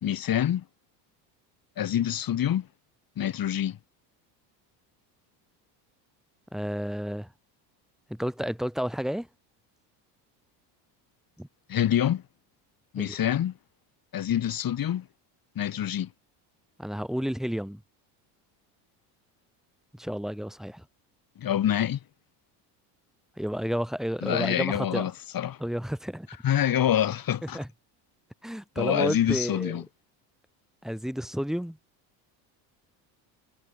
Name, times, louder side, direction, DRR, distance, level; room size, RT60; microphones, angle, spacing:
voice 1, 0.0-0.6 1.8-2.7 3.2-3.8 11.7-12.2 12.9-13.5 14.1-15.1 15.5-16.1 21.4-22.0 24.2-25.6 26.4-27.6 28.8-29.8, left 10 dB, 45° left, 3.1 m, -26 dB
voice 2, 6.5-7.3 8.1-9.3 11.4-11.5 13.0-13.2 16.8-17.8 19.9-20.8 23.4-25.1 25.6-26.3 27.5-27.7 28.4-29.8 30.8-31.8, equal, ahead, 1.7 m, -31 dB
supercardioid pair, 90°, 50 cm